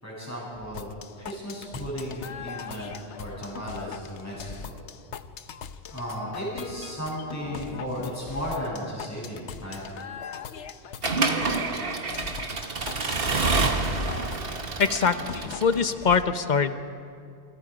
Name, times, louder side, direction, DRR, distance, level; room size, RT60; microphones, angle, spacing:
voice 1, 0.0-4.8 5.9-9.8, equal, 15° left, -7 dB, 8.0 m, -35 dB
sound 1, 0.7-16.2, left 7 dB, 90° left, 1.1 m, -40 dB
Accelerating revving vroom / Mechanisms, 11.0-15.9, right 3 dB, 55° right, 1.7 m, -27 dB
voice 2, 14.8-16.7, left 5 dB, 45° left, 10 dB, 1.1 m, -23 dB
28.0 x 26.0 x 5.2 m, 2.5 s
omnidirectional pair, 1.1 m